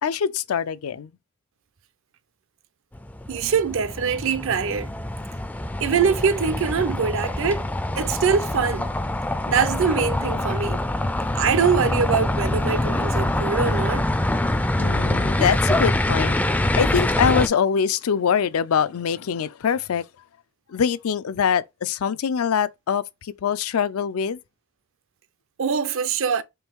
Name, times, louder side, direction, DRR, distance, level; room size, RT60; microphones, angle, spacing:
voice 1, 0.0-1.1 14.8-16.4 16.8-20.0 20.7-24.4, left 7 dB, 80° left, 0.4 m, -23 dB
sound 1, 2.9-17.5, left 1 dB, 5° left, 0.3 m, -24 dB
voice 2, 3.3-4.9 5.8-7.7 8.0-8.9 9.5-10.9 11.3-14.1 25.6-26.4, right 6 dB, 65° right, 0.5 m, -23 dB
4.6 x 3.1 x 3.4 m
head